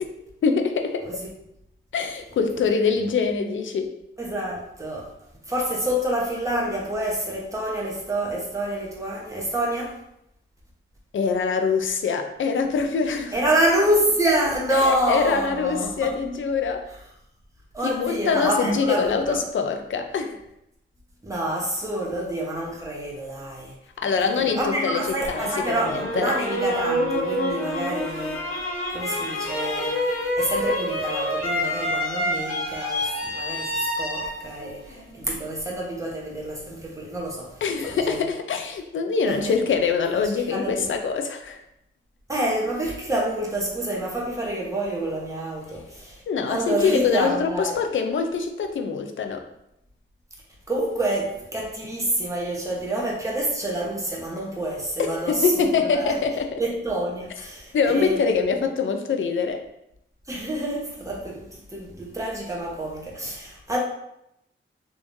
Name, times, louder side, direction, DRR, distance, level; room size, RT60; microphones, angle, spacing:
voice 1, 0.4-1.1 1.9-3.9 11.1-13.4 14.7-16.9 17.8-20.4 24.0-26.3 37.6-41.6 46.3-49.4 55.0-56.6 57.7-59.6, left 5 dB, 65° left, 5 dB, 0.5 m, -24 dB
voice 2, 4.2-5.1 5.5-10.0 13.3-16.1 17.7-19.4 21.2-23.7 24.2-28.4 28.9-30.1 30.4-38.3 39.2-39.5 40.4-40.9 42.3-46.2 46.5-47.8 50.7-55.5 55.9-56.2 56.6-58.4 60.3-63.8, right 1 dB, 15° right, -3 dB, 1.0 m, -27 dB
sound 1, 24.5-35.5, left 1 dB, 85° left, 1.0 m, -27 dB
3.5 x 3.0 x 2.7 m, 0.80 s
cardioid pair, 80°, 21 cm